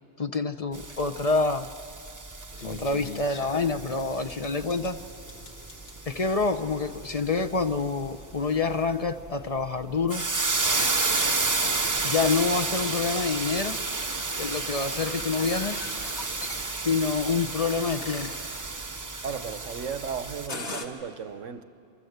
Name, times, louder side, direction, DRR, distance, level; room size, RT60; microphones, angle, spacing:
voice 1, 0.2-1.7 2.6-5.0 6.1-10.3 12.0-13.8 14.4-15.9 16.8-18.4, left 4 dB, 40° left, 0.6 m, -27 dB
sound 1, 0.7-20.5, right 3 dB, 20° right, 0.6 m, -32 dB
sound 2, 2.5-20.9, left 2 dB, 65° left, 2.2 m, -45 dB
sound 3, 10.4-16.3, right 6 dB, 55° right, 1.0 m, -45 dB
voice 2, 19.2-21.6, right 6 dB, 90° right, 1.3 m, -35 dB
27.5 x 25.0 x 8.0 m
omnidirectional pair, 1.2 m